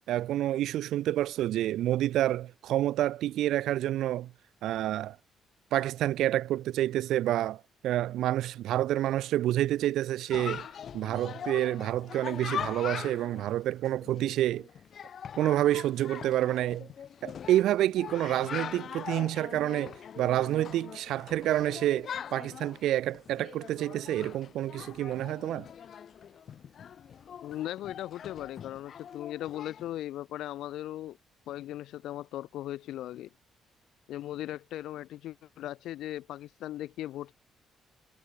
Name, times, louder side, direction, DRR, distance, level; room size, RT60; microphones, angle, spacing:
voice 1, 0.1-4.3 4.6-5.2 5.7-10.7 10.9-14.7 15.4-16.9 17.2-25.7, right 13 dB, 80° right, 0.7 m, -28 dB
Chatter, 10.3-29.9, left 8 dB, 55° left, 1.4 m, -42 dB
voice 2, 27.4-31.2 31.5-33.3 34.1-37.3, left 13 dB, 85° left, 0.5 m, -38 dB
cardioid pair, 115°, 0 cm